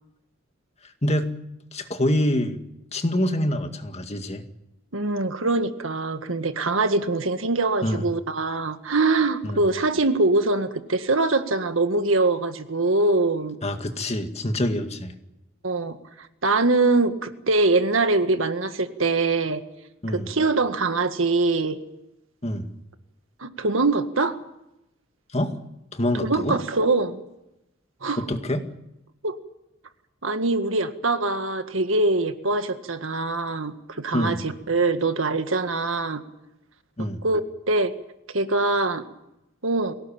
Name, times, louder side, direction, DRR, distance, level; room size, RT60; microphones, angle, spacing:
voice 1, 0.8-1.3 1.7-2.6 2.9-4.4 7.8-8.0 9.4-9.6 13.6-15.1 20.0-20.3 22.4-22.7 25.3-25.5 25.9-26.6 28.2-28.7 34.1-34.4 37.0-37.2, left 1 dB, 35° left, 6 dB, 2.1 m, -26 dB
voice 2, 4.9-13.6 15.6-19.6 20.1-21.8 23.4-24.4 26.2-27.2 28.0-28.2 29.2-29.4 30.2-36.2 37.2-37.4 37.7-37.9 38.3-39.0 39.6-39.9, right 3 dB, 80° right, 9 dB, 1.8 m, -23 dB
22.5 x 18.0 x 8.9 m, 0.89 s
head